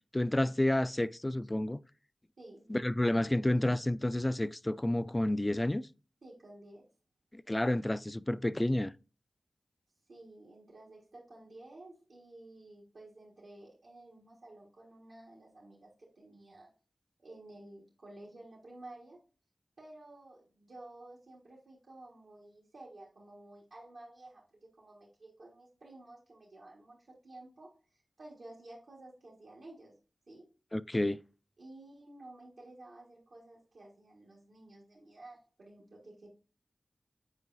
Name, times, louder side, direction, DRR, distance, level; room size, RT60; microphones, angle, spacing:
voice 1, 0.1-1.8 2.7-5.8 7.3-8.9 30.7-31.2, left 1 dB, 25° left, 0.3 m, -30 dB
voice 2, 2.4-2.7 6.2-6.8 10.1-16.7 17.2-19.2 19.8-30.0 30.3-30.5 31.6-36.3, right 2 dB, 85° right, 1.6 m, -53 dB
8.1 x 4.6 x 2.6 m
cardioid pair, 40°, 0 cm